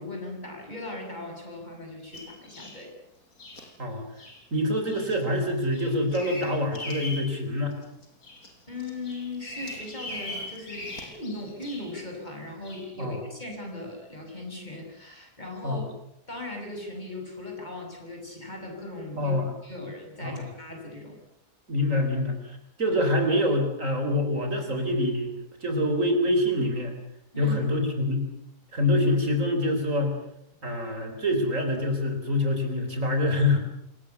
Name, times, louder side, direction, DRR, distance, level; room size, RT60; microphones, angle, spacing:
voice 1, 0.0-2.9 8.7-15.8 16.3-19.3 19.6-21.2 27.3-27.6, left 2 dB, 25° left, 2 dB, 6.8 m, -38 dB
Bird vocalization bird call bird song, 2.1-2.8 3.4-3.6 4.2-4.4 4.9-5.2 5.5-7.3 7.7-8.5 8.8-12.0 12.6-12.8, left 2 dB, 65° left, 5.5 m, -40 dB
voice 2, 4.5-7.8 13.0-13.2 15.6-15.9 19.1-19.5 20.2-20.5 21.7-25.3 25.6-26.9 27.4-28.3 28.7-30.1 30.6-33.6, left 1 dB, 50° right, 5 dB, 4.3 m, -25 dB
26.5 x 19.0 x 8.3 m, 0.79 s
omnidirectional pair, 1.7 m